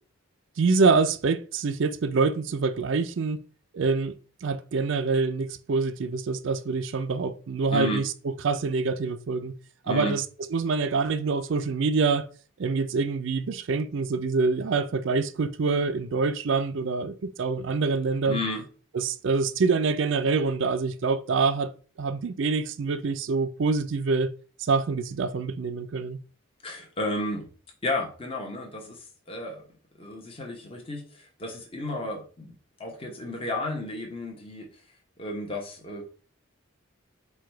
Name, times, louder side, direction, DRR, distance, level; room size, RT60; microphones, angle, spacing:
voice 1, 0.6-3.4 3.7-4.1 4.4-8.1 8.4-9.5 9.9-10.2 10.5-12.3 12.6-18.4 18.9-21.7 22.0-24.3 24.6-26.2, right 4 dB, 60° right, 0.4 m, -25 dB
voice 2, 7.7-8.0 9.9-10.2 18.2-18.6 26.6-27.5 27.8-29.6 30.0-32.5 32.8-34.7 35.2-36.0, left 2 dB, 25° left, 0.9 m, -32 dB
4.7 x 2.3 x 4.5 m
head